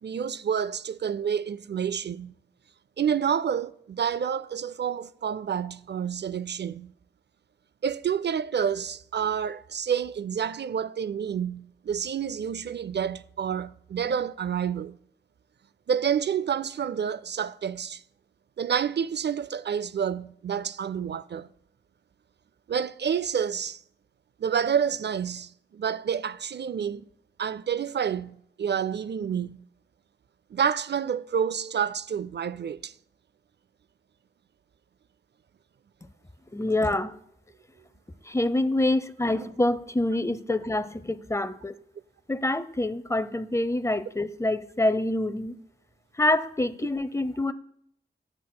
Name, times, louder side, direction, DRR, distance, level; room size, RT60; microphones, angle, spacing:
voice 1, 0.0-2.3 3.0-6.9 7.8-15.0 15.9-18.0 18.6-21.5 22.7-23.8 24.4-27.0 27.4-29.6 30.5-32.9, right 8 dB, 65° right, 0.4 m, -29 dB
voice 2, 36.5-37.1 38.3-41.8 42.3-45.5 46.2-47.5, left 1 dB, 15° left, 0.6 m, -26 dB
16.0 x 6.1 x 2.2 m
cardioid pair, 40°, 19 cm